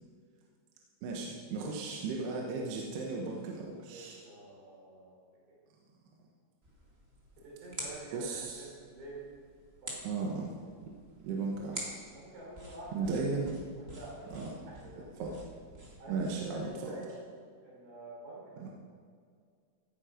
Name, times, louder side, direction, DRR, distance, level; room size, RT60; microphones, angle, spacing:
voice 1, 1.0-4.2 8.1-8.7 10.0-10.5 10.8-10.9 11.2-11.9 12.9-13.6 14.3-14.5 14.9-15.3 16.1-16.9 18.6-18.7, right 4 dB, 75° right, -1 dB, 3.2 m, -36 dB
voice 2, 3.9-5.2 5.5-5.6 7.4-9.2 9.8-10.0 12.1-13.1 13.7-14.4 14.7-15.4 16.0-17.1 17.6-18.7, right 2 dB, 90° right, -5 dB, 6.7 m, -48 dB
sound 1, 6.6-16.6, right 1 dB, 25° right, 1.5 m, -48 dB
17.0 x 9.4 x 5.1 m, 2.1 s
omnidirectional pair, 4.9 m